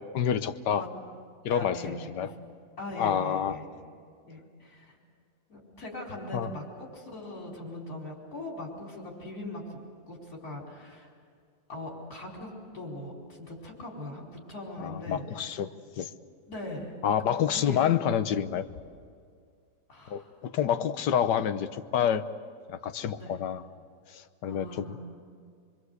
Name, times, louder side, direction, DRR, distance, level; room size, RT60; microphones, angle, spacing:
voice 1, 0.1-0.8 1.4-2.3 3.0-3.6 6.3-6.5 14.8-16.1 17.0-18.7 20.1-22.2 22.7-23.6 24.1-25.0, left 9 dB, 85° left, 11 dB, 1.5 m, -28 dB
voice 2, 1.5-2.4 2.8-3.7 4.2-5.0 5.5-9.8 10.1-11.1 11.7-15.2 16.5-17.0 17.3-17.8 19.9-20.3 23.2-23.3 24.5-25.2, left 1 dB, 60° left, -2 dB, 5.2 m, -40 dB
25.5 x 24.0 x 8.1 m, 2.2 s
omnidirectional pair, 1.8 m